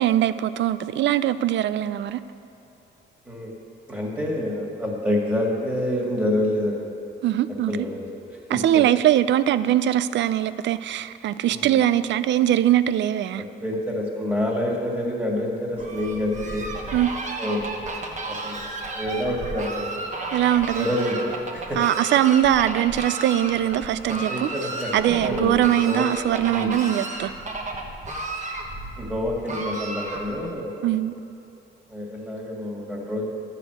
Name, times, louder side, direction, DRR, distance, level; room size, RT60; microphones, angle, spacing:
voice 1, 0.0-2.2 7.2-7.7 8.5-13.4 16.9-17.1 20.3-20.9 21.8-24.5 24.9-27.3 30.8-31.1, right 12 dB, 65° right, 14 dB, 0.4 m, -21 dB
voice 2, 3.9-6.9 7.7-8.0 8.3-8.8 11.5-11.8 13.4-16.7 17.4-17.7 18.1-20.1 20.8-21.8 24.1-25.6 25.8-26.1 26.5-26.7 29.0-30.9 31.9-33.2, left 1 dB, 10° right, -3 dB, 2.0 m, -27 dB
Fowl, 15.8-30.5, right 2 dB, 35° right, 1.2 m, -33 dB
12.0 x 4.2 x 7.8 m, 2.8 s
cardioid pair, 90°, 20 cm